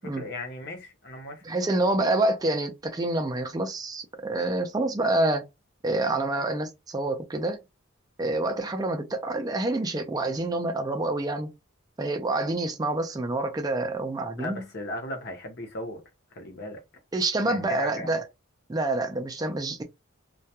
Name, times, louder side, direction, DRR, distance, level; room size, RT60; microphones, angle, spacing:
voice 1, 0.0-1.4 14.4-16.0 16.3-16.8 17.4-18.2, left 1 dB, 55° left, 0.7 m, -37 dB
voice 2, 1.4-5.5 5.8-7.6 8.2-11.5 12.0-14.6 17.1-18.2 18.7-19.8, right 2 dB, 20° right, 0.3 m, -27 dB
2.2 x 2.1 x 2.8 m
head